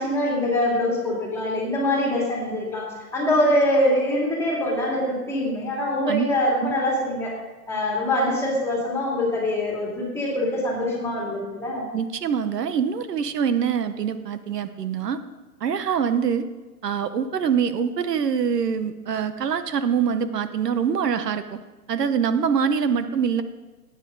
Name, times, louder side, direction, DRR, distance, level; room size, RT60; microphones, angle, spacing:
voice 1, 0.0-2.9 3.1-7.3 7.7-11.9, left 1 dB, 5° left, -3 dB, 2.4 m, -24 dB
voice 2, 11.9-15.2 15.6-16.5 16.8-21.6 21.9-23.4, right 7 dB, 80° right, 11 dB, 1.0 m, -24 dB
17.5 x 9.3 x 3.9 m, 1.3 s
hypercardioid pair, 160°, 47 cm